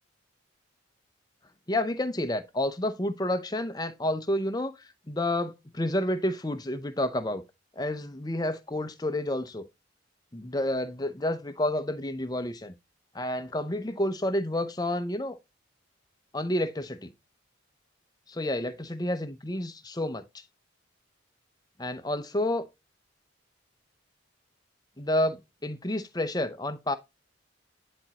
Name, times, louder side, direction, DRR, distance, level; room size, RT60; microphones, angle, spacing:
voice 1, 1.7-7.4 7.8-9.7 10.3-12.7 13.1-15.4 16.3-17.1 18.3-20.2 21.8-22.6 25.0-27.0, left 1 dB, 20° left, 0.7 m, -30 dB
10.5 x 4.3 x 2.9 m
head